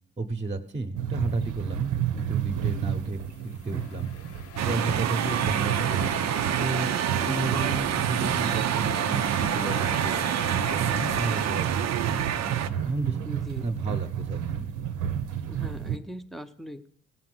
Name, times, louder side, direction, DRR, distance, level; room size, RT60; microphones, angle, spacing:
voice 1, 0.2-4.1 4.6-6.2 6.6-10.3 10.7-13.2 13.6-14.7, right 3 dB, 20° right, 6 dB, 1.0 m, -32 dB
sound 1, 1.0-16.0, right 9 dB, 85° right, 1.0 m, -31 dB
sound 2, 3.3-13.1, left 11 dB, 50° left, 0.4 m, -41 dB
sound 3, 4.6-12.7, right 10 dB, 60° right, 0.6 m, -28 dB
voice 2, 13.2-13.7 15.5-16.9, equal, ahead, 9 dB, 0.7 m, -40 dB
16.5 x 5.9 x 7.8 m, 0.69 s
cardioid pair, 90°, 30 cm